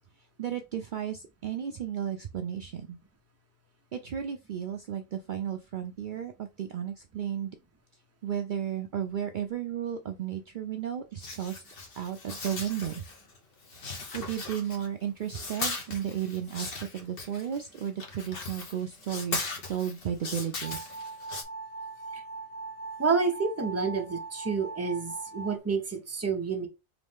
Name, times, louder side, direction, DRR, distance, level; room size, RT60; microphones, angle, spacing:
voice 1, 0.4-3.0 3.9-7.6 8.2-11.6 11.9-12.9 14.1-20.9, right 9 dB, 55° right, 0.6 m, -34 dB
sound 1, 11.2-13.4 13.6-15.0 15.3-21.4, left 3 dB, 60° left, 1.3 m, -38 dB
sound 2, 20.6-25.6, right 3 dB, 15° left, 0.3 m, -40 dB
voice 2, 23.0-26.7, right 5 dB, 15° right, 0.7 m, -29 dB
3.9 x 3.1 x 3.5 m
omnidirectional pair, 1.1 m